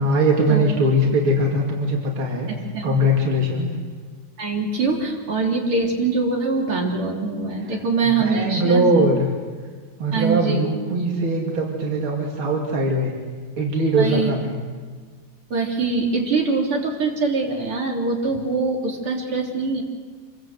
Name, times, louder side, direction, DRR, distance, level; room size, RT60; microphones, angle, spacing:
voice 1, 0.0-2.5 2.8-3.8 7.6-9.3 10.0-13.2 13.6-14.6, right 1 dB, 75° right, -1 dB, 3.5 m, -21 dB
voice 2, 4.4-9.1 10.1-10.7 14.0-14.3 15.5-19.8, right 3 dB, 90° right, 0 dB, 4.3 m, -23 dB
27.0 x 23.5 x 8.1 m, 1.5 s
omnidirectional pair, 2.3 m